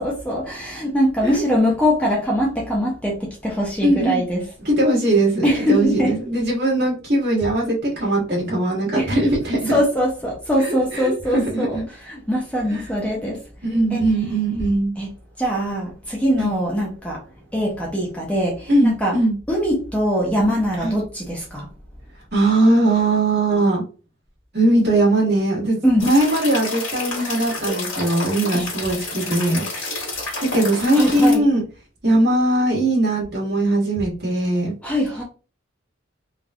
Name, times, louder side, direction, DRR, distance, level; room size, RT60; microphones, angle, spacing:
voice 1, 0.0-4.5 5.4-6.1 9.0-9.1 9.7-11.8 12.1-13.4 13.9-14.0 15.0-15.1 15.4-17.2 17.5-19.2 19.5-21.7 25.8-26.1 28.5-28.6 30.9-31.4 34.8-35.2, equal, 5° left, -2 dB, 0.5 m, -22 dB
voice 2, 3.8-4.2 4.6-9.7 10.6-10.7 10.9-11.9 12.7-12.8 13.6-14.9 16.4-16.5 18.7-19.4 20.8-21.0 22.3-23.8 24.5-30.1 30.5-31.6 32.0-34.7, right 1 dB, 50° right, -5 dB, 1.6 m, -20 dB
sound 1, 26.0-31.4, left 2 dB, 65° left, 1.4 m, -29 dB
3.4 x 2.4 x 2.3 m, 0.35 s
head